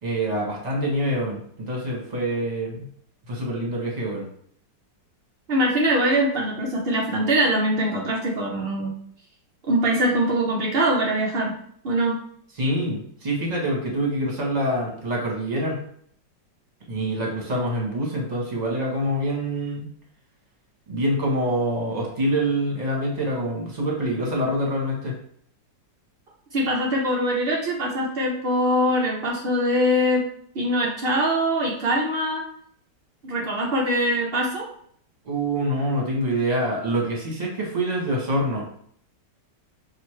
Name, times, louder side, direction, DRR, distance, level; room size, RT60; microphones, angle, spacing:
voice 1, 0.0-2.9 3.3-4.2 12.6-15.8 16.9-19.9 20.9-25.1 35.2-38.7, right 1 dB, 30° right, -2 dB, 1.0 m, -25 dB
voice 2, 5.5-8.9 9.7-11.5 11.8-12.2 26.5-30.2 30.5-32.4 33.2-34.7, equal, 65° right, -3 dB, 0.5 m, -23 dB
6.0 x 2.5 x 3.2 m, 0.63 s
omnidirectional pair, 2.0 m